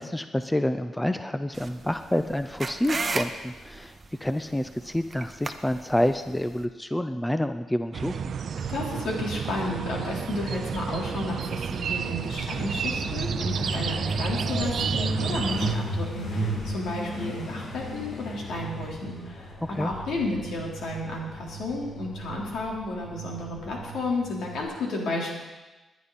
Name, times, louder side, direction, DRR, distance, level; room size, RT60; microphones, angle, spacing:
voice 1, 0.0-8.3 19.7-19.9, left 1 dB, 5° left, 9 dB, 0.5 m, -28 dB
sound 1, 1.5-6.6, right 3 dB, 25° right, 0.9 m, -36 dB
sound 2, 7.9-15.8, right 7 dB, 55° right, 0.6 m, -31 dB
voice 2, 8.6-25.3, left 2 dB, 75° left, -2 dB, 3.8 m, -32 dB
Truck, 12.3-24.6, right 1 dB, 60° left, 4.9 m, -34 dB
21.0 x 10.5 x 4.2 m, 1.1 s
cardioid pair, 130°, 0 cm